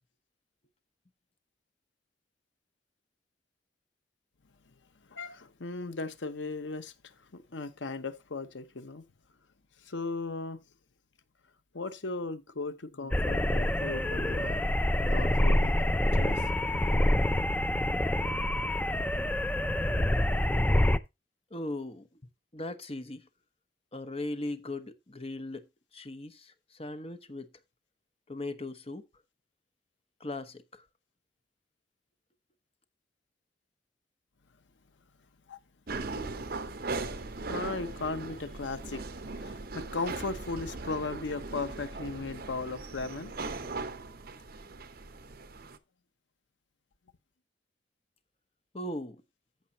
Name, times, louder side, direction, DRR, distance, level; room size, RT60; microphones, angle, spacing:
voice 1, 5.1-9.1 9.8-10.6 11.7-14.7 15.0-17.8 35.5-35.6 36.9-39.0 39.3-43.3, left 3 dB, 85° left, 0.9 m, -37 dB
sound 1, 13.1-21.0, left 1 dB, 10° left, 0.4 m, -26 dB
voice 2, 21.5-22.1 22.5-23.3 23.9-25.7 25.9-27.5 28.3-29.0 30.2-30.8 48.7-49.2, left 2 dB, 35° left, 1.1 m, -38 dB
sound 2, 35.9-45.8, right 3 dB, 55° right, 0.9 m, -39 dB
14.5 x 5.7 x 2.8 m
head